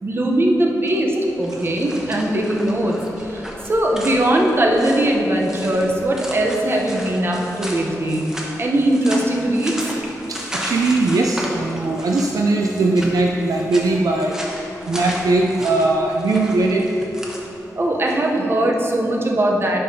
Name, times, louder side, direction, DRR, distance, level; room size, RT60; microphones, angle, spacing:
voice 1, 0.0-8.3 8.6-9.7 17.7-19.8, right 1 dB, 35° right, 0 dB, 0.8 m, -20 dB
sound 1, 0.8-18.4, equal, 10° right, 1.0 m, -35 dB
voice 2, 10.3-14.4 14.9-16.8, right 2 dB, 65° right, 1 dB, 0.4 m, -19 dB
10.0 x 5.6 x 2.8 m, 3.0 s
wide cardioid pair, 105°, 7 cm